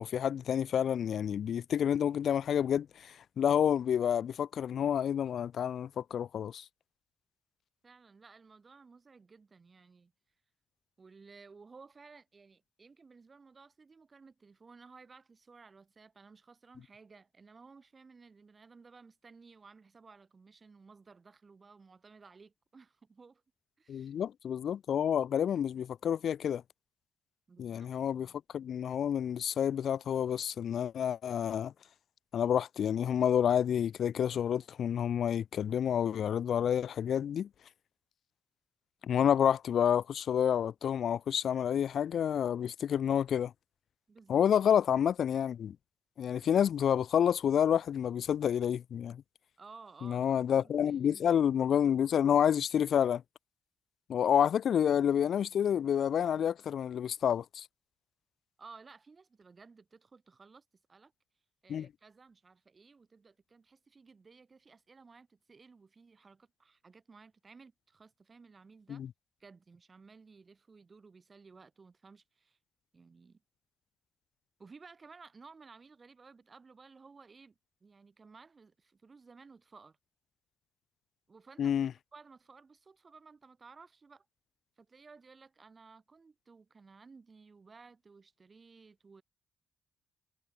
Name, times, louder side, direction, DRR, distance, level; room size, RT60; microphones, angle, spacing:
voice 1, 0.0-6.6 23.9-26.6 27.6-31.7 32.3-37.5 39.0-43.5 44.3-45.8 46.2-49.2 50.0-53.2 54.1-57.7 61.7-61.9 68.9-69.1 81.6-81.9, left 9 dB, 65° left, 0.4 m, -29 dB
voice 2, 7.8-10.1 11.0-23.4 23.8-24.1 27.5-27.9 28.1-28.4 44.1-44.5 49.6-51.4 58.6-60.6 60.9-61.1 61.6-69.0 69.4-72.6 72.9-73.4 74.6-80.0 81.3-84.3 84.8-89.2, right 4 dB, 40° right, 6.1 m, -56 dB
supercardioid pair, 55°, 0 cm